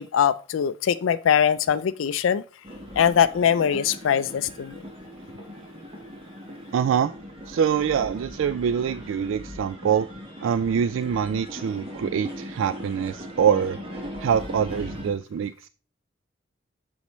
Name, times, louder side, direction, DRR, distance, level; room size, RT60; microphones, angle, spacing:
voice 1, 0.0-2.4 3.0-4.8, left 8 dB, 80° left, 0.4 m, -22 dB
sound 1, 2.6-15.1, equal, 30° right, 1.4 m, -39 dB
voice 2, 6.7-7.1 7.5-10.1 10.4-15.7, right 7 dB, 80° right, 0.3 m, -25 dB
8.3 x 6.3 x 3.1 m
head